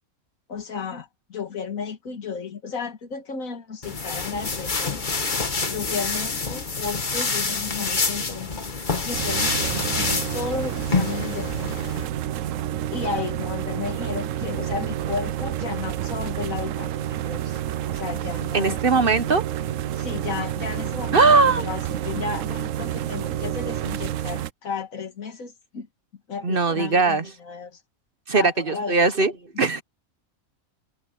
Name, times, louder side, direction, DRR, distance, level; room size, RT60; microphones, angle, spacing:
voice 1, 0.5-5.0 5.7-8.5 9.0-11.7 12.9-17.6 17.9-18.8 20.0-25.9 26.3-27.8 28.3-29.1 29.5-29.6, left 5 dB, 75° left, 2.1 m, -33 dB
sound 1, 3.8-12.1, left 4 dB, 35° left, 1.7 m, -27 dB
sound 2, 9.1-24.5, right 11 dB, 70° right, 1.0 m, -29 dB
voice 2, 18.5-19.4 21.1-21.6 26.4-27.3 28.3-29.3 29.6-29.8, right 4 dB, 45° right, 1.1 m, -19 dB
omnidirectional pair, 1.4 m